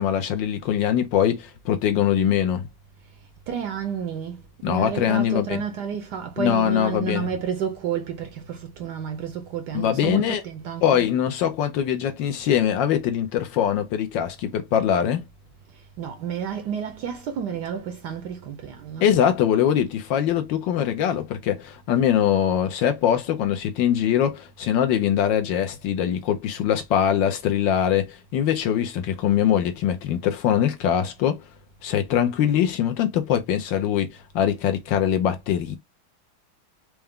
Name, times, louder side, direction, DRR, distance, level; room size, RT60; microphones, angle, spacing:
voice 1, 0.0-2.6 4.6-5.6 6.4-7.3 9.7-10.4 10.8-15.2 19.0-31.4 31.8-34.1 34.3-35.8, left 9 dB, 70° left, 1.2 m, -22 dB
voice 2, 3.5-11.1 15.7-19.2, right 7 dB, 70° right, 1.0 m, -31 dB
4.5 x 2.1 x 3.5 m
omnidirectional pair, 2.3 m